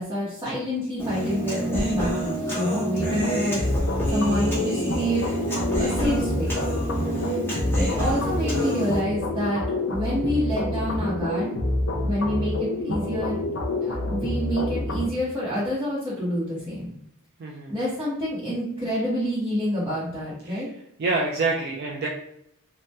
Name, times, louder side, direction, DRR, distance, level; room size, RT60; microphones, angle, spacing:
voice 1, 0.0-3.6 4.1-5.2 5.8-6.6 7.7-11.5 12.0-13.4 13.8-16.9 17.7-20.7, equal, 15° right, -11 dB, 0.8 m, -27 dB
Human voice, 1.0-9.0, right 1 dB, 10° left, 1.0 m, -28 dB
sound 1, 3.0-15.1, left 1 dB, 65° left, 0.6 m, -27 dB
voice 2, 17.4-17.7 20.5-20.6 21.0-22.1, right 3 dB, 50° right, -1 dB, 0.4 m, -27 dB
2.7 x 2.1 x 3.3 m, 0.77 s
head